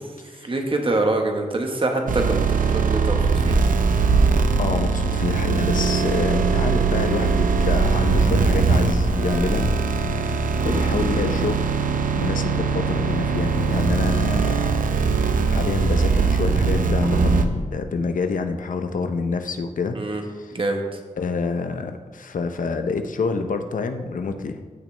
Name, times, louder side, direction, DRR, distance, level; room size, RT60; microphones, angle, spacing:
voice 1, 0.4-3.6 10.6-10.8 19.9-20.2 20.5-21.0, right 2 dB, 40° right, 3 dB, 1.3 m, -25 dB
sound 1, 2.1-17.5, right 4 dB, 85° right, 0.6 m, -21 dB
voice 2, 4.6-11.7 12.1-14.7 15.0-20.0 20.4-20.6 21.2-24.6, left 4 dB, 80° left, 7 dB, 0.7 m, -27 dB
15.5 x 6.0 x 3.3 m, 1.4 s
wide cardioid pair, 115°, 14 cm